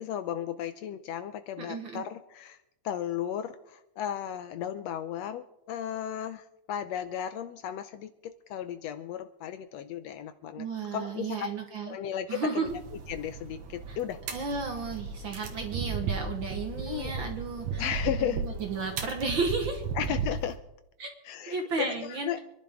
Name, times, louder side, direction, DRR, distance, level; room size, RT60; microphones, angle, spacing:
voice 1, 0.0-2.6 2.8-10.6 10.9-11.5 11.9-12.7 13.1-14.2 16.9-17.3 17.8-18.4 20.0-20.6 21.2-22.4, left 10 dB, 75° left, 10 dB, 1.7 m, -35 dB
voice 2, 1.6-2.0 10.5-12.0 12.3-12.7 13.9-14.0 14.3-17.9 18.2-19.8 21.0-21.1 21.5-22.4, right 4 dB, 50° right, 4 dB, 1.7 m, -33 dB
sound 1, 12.7-20.6, right 5 dB, 80° right, 2.8 m, -35 dB
26.5 x 11.0 x 3.6 m, 0.86 s
omnidirectional pair, 3.4 m